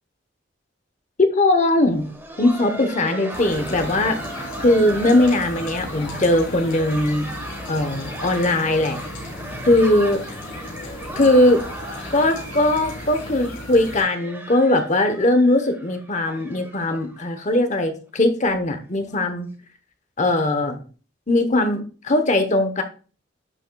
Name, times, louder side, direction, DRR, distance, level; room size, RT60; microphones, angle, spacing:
voice 1, 1.2-2.1 2.4-4.2 4.6-7.3 7.7-9.0 9.6-10.2 11.2-11.6 12.1-19.5 20.2-20.8 21.3-22.8, left 1 dB, 40° left, 7 dB, 0.9 m, -19 dB
Laughter, 1.8-17.5 17.8-17.9 18.4-18.6 19.1-19.3 20.4-20.5, right 1 dB, 10° right, 1.2 m, -37 dB
sound 1, 3.3-14.0, left 1 dB, 80° left, 4.1 m, -35 dB
11.0 x 6.5 x 2.3 m, 0.37 s
head